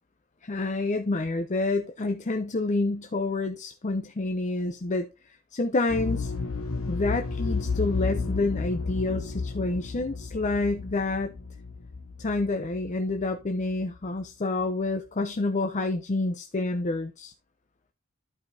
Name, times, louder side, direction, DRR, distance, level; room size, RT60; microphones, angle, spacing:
voice 1, 0.4-6.3 6.9-11.3 12.2-17.3, left 2 dB, 35° left, 0.6 m, -28 dB
sound 1, 5.9-13.7 14.0-14.1, left 4 dB, 85° left, 1.1 m, -32 dB
13.5 x 4.9 x 2.7 m
head